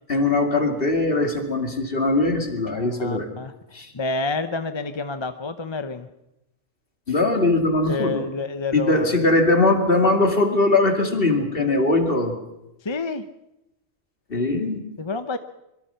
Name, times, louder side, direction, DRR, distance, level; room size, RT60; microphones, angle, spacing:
voice 1, 0.1-3.3 3.7-3.9 7.1-8.2 8.7-12.4 14.3-14.8, left 2 dB, 45° left, 5 dB, 2.7 m, -21 dB
voice 2, 2.7-3.5 3.9-6.1 7.8-9.2 12.8-13.3 15.0-15.4, left 3 dB, 25° left, 10 dB, 0.7 m, -29 dB
25.0 x 23.0 x 5.7 m, 0.90 s
omnidirectional pair, 1.4 m